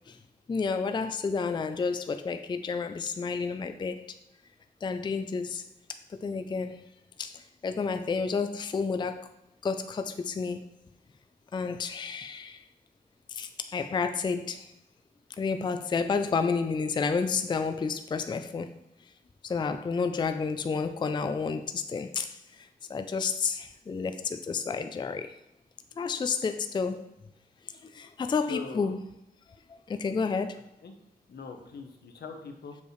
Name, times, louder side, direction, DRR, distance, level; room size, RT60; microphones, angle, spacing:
voice 1, 0.5-4.1 4.8-5.6 6.2-6.8 7.2-7.3 7.6-9.3 9.6-10.7 11.5-12.6 13.3-14.7 15.4-18.7 19.4-22.4 22.9-25.3 26.0-27.1 27.9-29.1 29.9-30.6, left 5 dB, 30° left, 8 dB, 0.3 m, -30 dB
voice 2, 28.5-28.9 30.8-30.9 31.3-32.8, left 4 dB, 80° left, 4 dB, 0.9 m, -41 dB
6.7 x 5.2 x 3.1 m, 0.86 s
wide cardioid pair, 110°, 17 cm